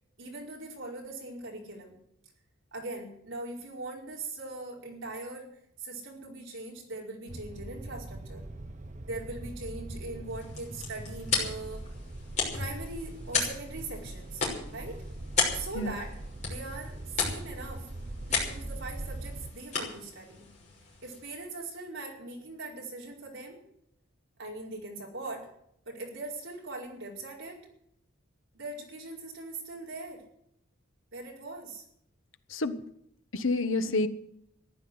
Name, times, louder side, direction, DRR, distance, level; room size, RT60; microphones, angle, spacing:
voice 1, 0.2-2.0 2.7-5.5 5.8-8.5 9.0-11.8 12.5-14.4 14.7-15.0 15.5-16.1 16.4-17.9 18.3-20.5 21.0-23.6 24.4-25.5 25.8-27.7 28.5-30.2 31.1-31.8, right 2 dB, 65° right, -2 dB, 5.0 m, -41 dB
sound 1, 7.3-19.5, right 1 dB, 35° right, 0.8 m, -42 dB
sound 2, 10.2-21.5, left 4 dB, 35° left, 6.1 m, -35 dB
voice 2, 32.5-32.8 33.3-34.1, left 2 dB, 70° left, 10 dB, 1.2 m, -28 dB
14.5 x 11.5 x 7.9 m, 0.73 s
head